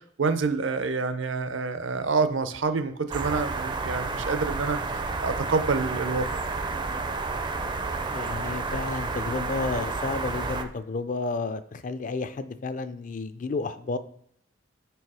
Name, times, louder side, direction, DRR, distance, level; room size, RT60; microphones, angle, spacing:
voice 1, 0.2-6.3, right 4 dB, 70° right, 11 dB, 0.6 m, -27 dB
sound 1, 3.1-10.6, right 3 dB, 25° right, 0.4 m, -31 dB
voice 2, 6.9-7.2 8.1-14.0, left 3 dB, 40° left, 12 dB, 0.4 m, -32 dB
6.1 x 4.6 x 4.8 m, 0.67 s
head